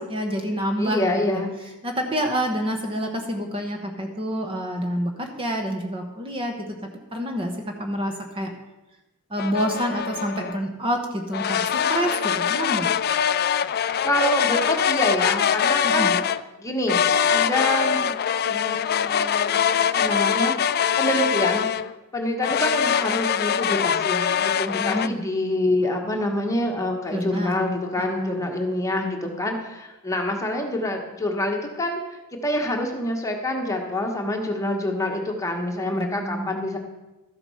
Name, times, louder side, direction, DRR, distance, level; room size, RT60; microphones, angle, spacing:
voice 1, 0.0-1.4 1.8-8.5 9.3-12.9 15.8-16.1 24.6-25.2 27.1-27.6 28.1-28.4 36.0-36.5, equal, 25° right, 3 dB, 1.1 m, -28 dB
voice 2, 0.8-1.5 13.8-16.1 16.6-17.0 17.3-18.1 18.5-20.6 21.0-21.6 22.1-32.0 32.4-36.8, left 1 dB, 15° left, 2 dB, 1.5 m, -26 dB
sound 1, 9.4-10.6 11.3-16.4 16.9-21.9 22.4-25.1, left 8 dB, 45° left, 0.4 m, -23 dB
13.0 x 7.9 x 5.7 m, 1.0 s
head